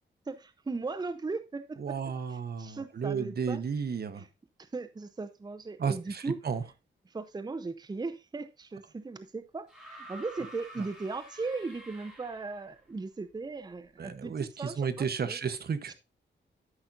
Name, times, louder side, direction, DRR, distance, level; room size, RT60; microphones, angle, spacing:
voice 1, 0.3-2.0 2.3-3.6 4.1-4.3 4.6-6.4 7.0-15.4 15.9-16.0, right 3 dB, 20° right, 0.7 m, -38 dB
voice 2, 1.8-4.2 5.8-5.9 6.4-6.6 14.0-15.9, right 6 dB, 55° right, 1.0 m, -32 dB
sound 1, 9.7-12.7 14.0-14.1, right 1 dB, 5° right, 4.5 m, -49 dB
12.5 x 5.9 x 2.5 m
wide cardioid pair, 120°, 20 cm